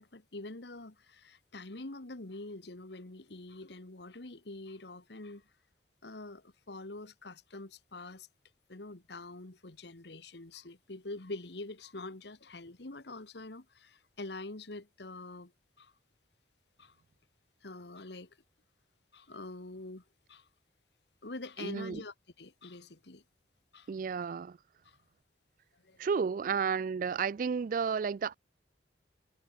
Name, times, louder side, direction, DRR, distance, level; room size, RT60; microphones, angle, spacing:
voice 1, 0.0-5.5 6.0-8.3 8.7-15.5 15.8-15.9 16.8-17.0 17.6-18.4 19.1-20.0 20.3-20.5 21.2-23.2 23.7-23.9 24.8-25.0 25.8-26.1, left 2 dB, 65° left, 1.6 m, -45 dB
voice 2, 21.6-22.0 23.9-24.6 26.0-28.3, right 6 dB, 45° right, 0.3 m, -32 dB
head